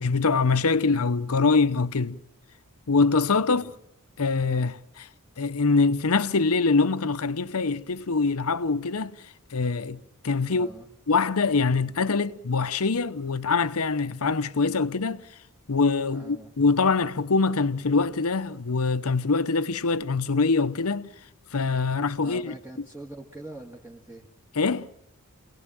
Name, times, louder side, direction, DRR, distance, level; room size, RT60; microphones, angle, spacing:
voice 1, 0.0-2.2 2.9-3.6 4.2-5.1 5.4-9.1 9.5-10.7 11.1-15.2 15.7-21.1 21.5-22.5 24.6-24.9, left 4 dB, 70° left, 0.8 m, -24 dB
voice 2, 10.5-10.9 16.1-16.5 22.2-24.3, right 1 dB, 10° right, 1.7 m, -43 dB
28.5 x 17.5 x 7.6 m
head